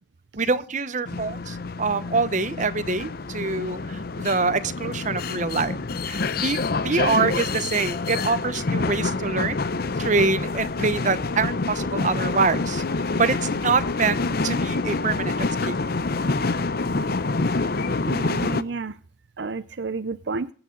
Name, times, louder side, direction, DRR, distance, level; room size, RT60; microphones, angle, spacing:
voice 1, 0.4-5.8 6.1-9.6 10.0-12.8 13.2-15.3 15.6-15.8, right 4 dB, 40° right, 1.0 m, -25 dB
sound 1, 1.1-18.6, left 3 dB, 55° left, 0.7 m, -27 dB
voice 2, 18.1-19.0 19.4-20.5, right 4 dB, 65° right, 0.6 m, -31 dB
22.5 x 9.0 x 3.9 m
head